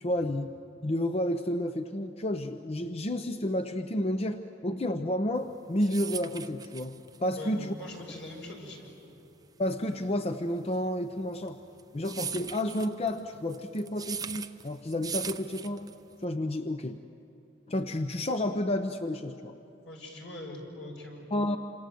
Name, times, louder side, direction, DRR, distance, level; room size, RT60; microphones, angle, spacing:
voice 1, 0.0-0.5 0.8-7.8 9.6-11.6 11.9-15.8 16.2-17.0 17.7-19.5 21.3-21.6, left 1 dB, 35° left, 8 dB, 0.7 m, -31 dB
sound 1, 5.4-16.2, right 7 dB, 20° right, 0.6 m, -40 dB
voice 2, 7.3-8.9 19.8-21.3, left 1 dB, 80° left, 0 dB, 6.5 m, -42 dB
27.5 x 27.0 x 7.9 m, 2.9 s
head